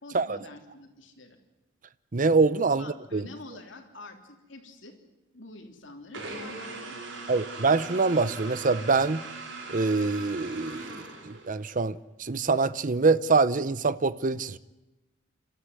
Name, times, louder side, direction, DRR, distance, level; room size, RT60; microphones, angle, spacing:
voice 1, 0.0-1.4 2.7-5.0 5.3-7.4, left 2 dB, 70° left, 3.3 m, -47 dB
voice 2, 2.1-3.2 7.3-9.3 9.7-14.6, right 4 dB, 40° right, 0.7 m, -25 dB
sound 1, 6.1-11.7, right 3 dB, 65° right, 3.9 m, -40 dB
28.0 x 13.5 x 9.6 m
head